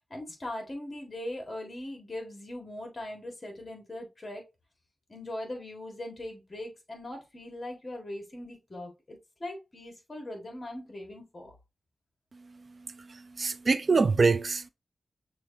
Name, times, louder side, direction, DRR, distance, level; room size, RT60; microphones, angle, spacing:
voice 1, 0.1-4.4 5.1-11.5, left 1 dB, 35° left, 1.7 m, -40 dB
voice 2, 12.3-14.7, right 4 dB, 55° right, 0.4 m, -26 dB
6.1 x 2.5 x 2.8 m
wide cardioid pair, 75°, 0 cm